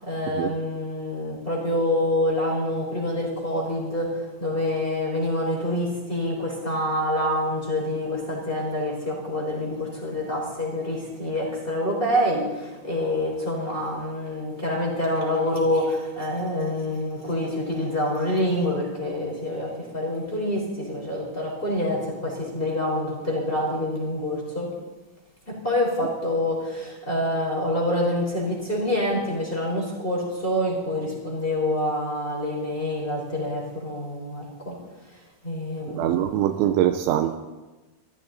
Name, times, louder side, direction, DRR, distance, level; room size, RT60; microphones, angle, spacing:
voice 1, 0.0-4.1 4.4-24.7 25.5-34.7 35.4-36.3, left 1 dB, 10° left, -3 dB, 3.7 m, -26 dB
voice 2, 36.0-37.3, right 12 dB, 80° right, 9 dB, 2.9 m, -23 dB
24.5 x 14.0 x 4.0 m, 1.1 s
omnidirectional pair, 5.6 m